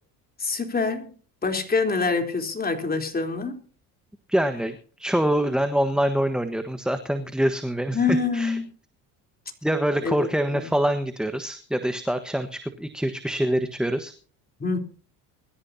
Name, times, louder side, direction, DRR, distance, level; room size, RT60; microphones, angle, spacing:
voice 1, 0.4-1.1 1.4-3.6 7.9-8.6 10.0-10.2 10.5-10.7 14.6-14.8, left 4 dB, 25° left, 3.8 m, -25 dB
voice 2, 4.3-8.6 9.6-14.1, right 1 dB, ahead, 1.3 m, -25 dB
23.0 x 14.0 x 2.8 m
cardioid pair, 100°, 37 cm